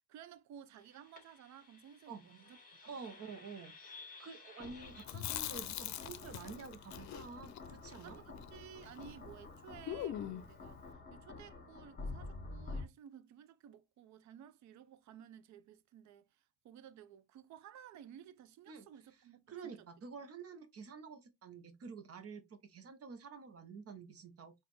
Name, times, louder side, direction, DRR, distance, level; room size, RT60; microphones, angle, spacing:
voice 1, 0.0-2.9 8.0-19.9, right 9 dB, 70° right, 0.5 m, -56 dB
sound 1, 0.8-12.9, left 3 dB, 30° left, 1.7 m, -50 dB
voice 2, 2.8-3.7 4.2-8.2 18.7-18.8 19.5-24.5, right 5 dB, 50° right, 1.0 m, -49 dB
Chewing mastication, 5.0-9.2 9.4-9.5 9.9-10.6, left 11 dB, 65° left, 0.5 m, -43 dB
4.1 x 2.6 x 3.2 m
cardioid pair, 90°, 30 cm